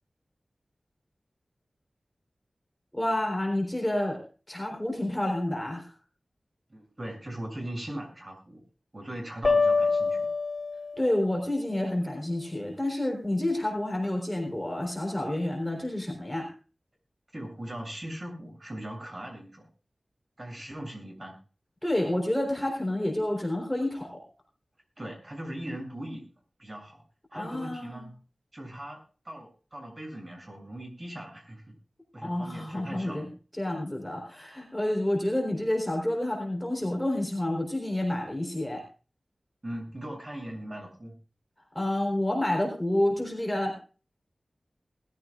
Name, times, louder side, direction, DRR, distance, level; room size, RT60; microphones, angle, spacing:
voice 1, 2.9-4.2 4.5-5.9 10.9-16.5 21.8-24.2 27.3-28.1 32.2-33.2 33.6-38.8 41.7-43.8, left 1 dB, 5° left, 1 dB, 4.0 m, -29 dB
voice 2, 6.7-8.6 8.9-10.3 17.3-19.7 20.4-21.4 25.0-26.2 26.6-27.0 27.3-28.1 28.5-29.0 29.2-31.7 32.1-33.3 39.6-41.2, right 1 dB, 35° right, 1 dB, 7.8 m, -39 dB
sound 1, 9.4-11.3, left 4 dB, 60° left, 4.3 m, -25 dB
20.5 x 14.5 x 2.5 m, 0.36 s
wide cardioid pair, 80°, 0 cm